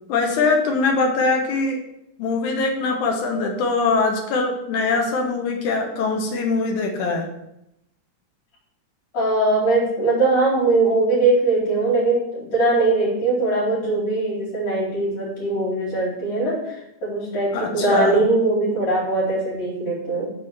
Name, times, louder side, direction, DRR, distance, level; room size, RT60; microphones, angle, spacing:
voice 1, 0.1-1.8 2.2-7.3 17.5-18.2, left 3 dB, 75° left, 2 dB, 2.4 m, -22 dB
voice 2, 9.1-20.3, right 2 dB, 60° left, -9 dB, 3.8 m, -21 dB
6.6 x 4.1 x 6.2 m, 0.81 s
omnidirectional pair, 3.6 m